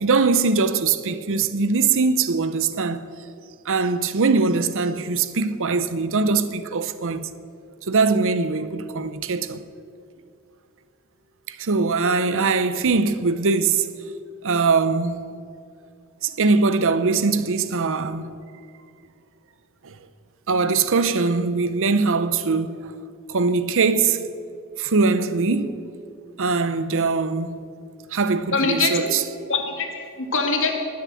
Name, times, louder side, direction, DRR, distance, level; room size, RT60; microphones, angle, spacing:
voice 1, 0.0-3.1 3.7-7.3 7.9-9.6 11.5-13.9 14.4-15.3 16.2-18.4 19.8-19.9 20.5-22.9 23.3-24.3 24.8-25.8 26.4-27.6 28.1-29.2, right 4 dB, 65° right, 0.8 m, -21 dB
voice 2, 28.5-29.1 29.5-30.7, left 4 dB, 60° left, 1.9 m, -23 dB
18.5 x 7.4 x 7.5 m
head